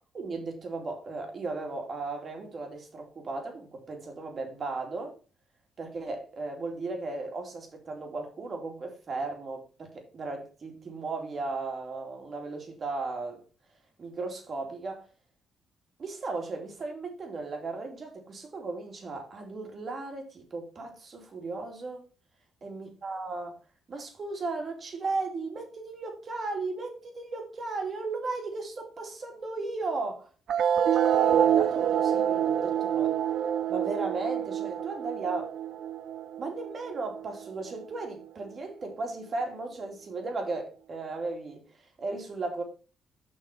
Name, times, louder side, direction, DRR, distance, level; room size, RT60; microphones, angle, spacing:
voice 1, 0.1-5.2 5.8-13.4 14.0-15.0 16.0-22.0 22.6-23.6 23.9-30.3 30.9-33.1 33.7-35.5 36.4-42.6, right 3 dB, 45° right, 2.7 m, -36 dB
sound 1, 30.5-37.5, right 9 dB, 70° right, 0.5 m, -26 dB
6.5 x 5.8 x 4.8 m
cardioid pair, 90°, 0 cm